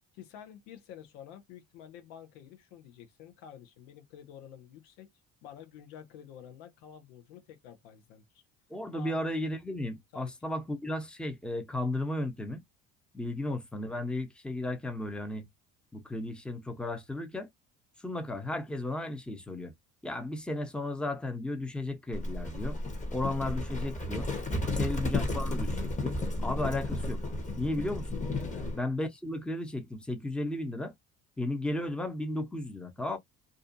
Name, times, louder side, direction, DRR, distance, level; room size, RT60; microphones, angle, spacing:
voice 1, 0.1-5.1 5.4-8.2 8.9-9.2 10.1-10.3 24.5-24.9 28.4-28.7, left 9 dB, 90° left, 0.8 m, -49 dB
voice 2, 8.7-12.6 13.1-15.5 15.9-17.5 18.0-19.7 20.0-22.8 23.1-24.3 24.8-27.2 27.6-28.2 28.7-30.9 31.4-33.2, left 1 dB, 5° left, 0.7 m, -34 dB
Livestock farm animals working animals, 22.1-28.8, left 2 dB, 20° left, 1.0 m, -33 dB
2.5 x 2.3 x 2.6 m
supercardioid pair, 80°, 35 cm